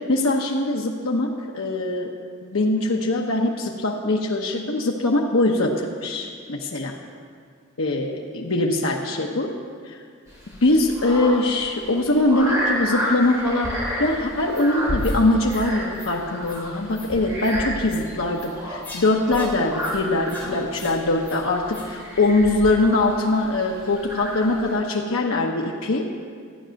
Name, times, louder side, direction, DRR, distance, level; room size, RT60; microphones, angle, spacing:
voice 1, 0.1-2.1 2.4-6.9 7.8-9.5 10.6-26.1, left 2 dB, 80° left, 0 dB, 1.0 m, -22 dB
sound 1, 10.3-24.7, equal, 15° right, 3.1 m, -31 dB
sound 2, 14.5-14.7 15.0-15.2 15.5-15.7 15.9-16.1 16.4-16.6 16.9-17.1 17.4-17.5 17.9-18.0 18.3-18.5 18.8-19.0 19.3-19.5 19.8-20.0 20.3-20.5 20.7-21.0 21.2-21.4 21.7-21.9, left 3 dB, 10° left, 3.1 m, -42 dB
13.5 x 9.1 x 6.4 m, 2.1 s
head